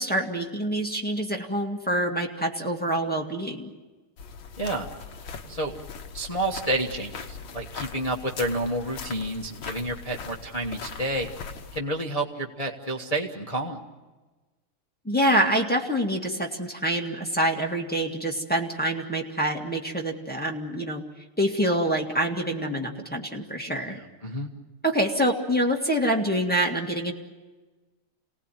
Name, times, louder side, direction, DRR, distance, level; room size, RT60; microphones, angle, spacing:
voice 1, 0.0-3.7 15.0-21.0 21.4-24.0 24.8-27.1, right 1 dB, 5° left, 0 dB, 1.7 m, -26 dB
sound 1, 4.2-11.8, left 6 dB, 70° left, 2.1 m, -40 dB
voice 2, 4.6-4.9 5.5-5.7 6.1-11.3 11.7-13.8 24.2-24.5, right 1 dB, 20° left, -1 dB, 1.2 m, -29 dB
28.0 x 18.5 x 9.1 m, 1.3 s
omnidirectional pair, 2.3 m